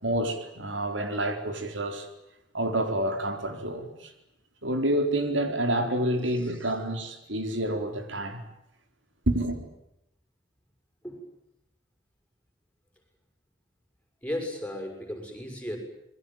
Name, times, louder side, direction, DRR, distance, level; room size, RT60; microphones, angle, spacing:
voice 1, 0.0-2.1 2.5-4.1 4.6-8.4 9.3-9.6, right 1 dB, 85° right, 4.3 m, -28 dB
voice 2, 14.2-15.8, left 1 dB, 10° left, 6.2 m, -35 dB
27.0 x 22.0 x 9.0 m
head